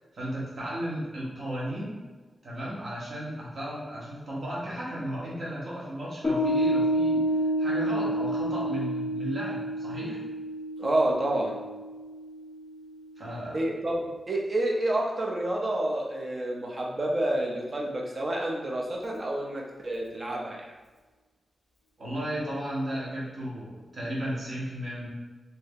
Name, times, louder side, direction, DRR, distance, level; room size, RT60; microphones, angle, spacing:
voice 1, 0.1-2.0 2.4-7.3 7.6-10.2 13.2-13.6 22.0-25.1, equal, 55° right, -6 dB, 1.1 m, -34 dB
Piano, 6.2-13.0, right 1 dB, 35° left, 0.6 m, -29 dB
voice 2, 10.8-11.6 13.5-20.7, right 1 dB, 35° right, -1 dB, 0.5 m, -29 dB
2.7 x 2.7 x 3.5 m, 1.3 s
wide cardioid pair, 155°, 0 cm